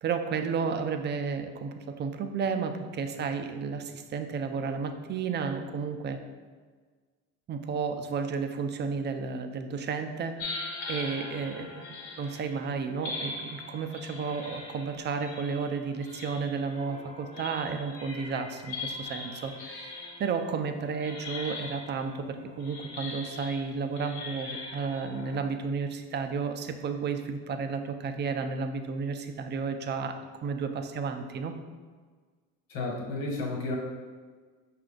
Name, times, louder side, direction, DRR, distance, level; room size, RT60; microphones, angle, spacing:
voice 1, 0.0-6.2 7.5-11.8 12.2-30.1 30.4-31.6, right 5 dB, 25° right, 6 dB, 0.4 m, -32 dB
sound 1, 10.4-25.4, left 3 dB, 85° left, 1.1 m, -41 dB
voice 2, 32.7-33.8, left 2 dB, 55° left, 0 dB, 1.4 m, -32 dB
5.6 x 2.5 x 3.7 m, 1.5 s
supercardioid pair, 90°, 42 cm